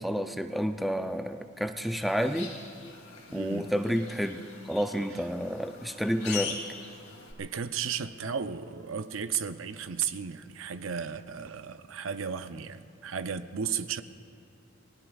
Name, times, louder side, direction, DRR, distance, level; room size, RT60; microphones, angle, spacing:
voice 1, 0.0-2.5 3.3-6.6, equal, ahead, 0.4 m, -30 dB
sound 1, 1.8-7.3, left 6 dB, 70° left, 2.6 m, -42 dB
voice 2, 3.3-3.7 7.4-14.0, right 7 dB, 65° right, 0.6 m, -34 dB
29.0 x 19.5 x 2.4 m
head